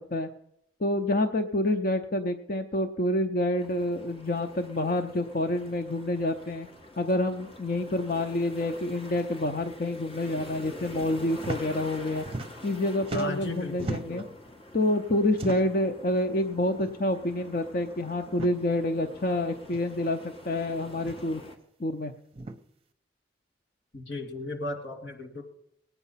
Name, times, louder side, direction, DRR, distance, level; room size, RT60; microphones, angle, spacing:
voice 1, 0.8-6.7 7.0-12.3 12.6-14.2 14.7-21.4 21.8-22.1, left 1 dB, 50° left, 5 dB, 0.7 m, -28 dB
sound 1, 3.6-21.6, left 1 dB, 35° left, 1.9 m, -46 dB
sound 2, 11.3-11.6 11.9-12.8 13.0-14.3 15.3-15.8 16.8-16.9 17.3-17.4 18.3-18.5 19.7-19.8 21.0-21.3 22.3-22.6, right 2 dB, 35° right, 0.8 m, -37 dB
voice 2, 13.1-14.3 23.9-25.4, left 2 dB, 90° left, 3 dB, 2.5 m, -36 dB
19.0 x 9.3 x 5.7 m, 0.78 s
head